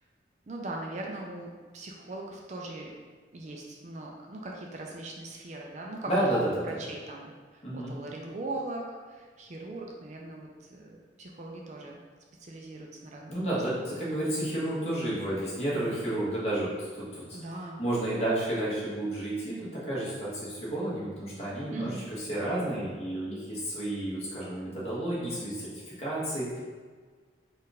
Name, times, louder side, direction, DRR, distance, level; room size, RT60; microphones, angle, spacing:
voice 1, 0.5-3.0 3.3-12.0 12.4-13.6 17.3-17.8 21.7-22.1, right 2 dB, 40° right, -1 dB, 0.4 m, -40 dB
voice 2, 6.0-6.8 7.6-7.9 13.3-17.4 17.8-25.7 26.0-26.6, right 1 dB, 35° left, -8 dB, 1.3 m, -31 dB
4.2 x 2.5 x 4.0 m, 1.5 s
head